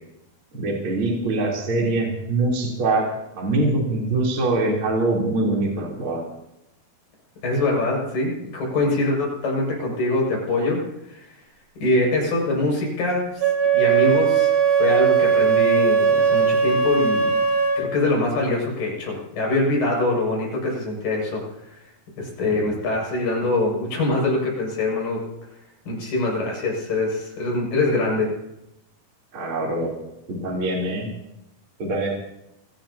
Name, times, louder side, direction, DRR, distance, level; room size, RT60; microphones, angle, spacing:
voice 1, 0.5-3.0 3.3-6.2 29.3-29.9 30.3-31.1 31.8-32.1, right 2 dB, 35° right, -3 dB, 4.1 m, -23 dB
voice 2, 7.4-11.4 11.8-17.4 17.8-21.8 22.2-25.2 25.9-28.3, left 2 dB, 65° left, -2 dB, 8.3 m, -24 dB
Wind instrument woodwind instrument, 13.4-17.9, right 6 dB, 60° right, 1.6 m, -19 dB
25.5 x 19.0 x 2.9 m, 0.85 s
omnidirectional pair, 4.3 m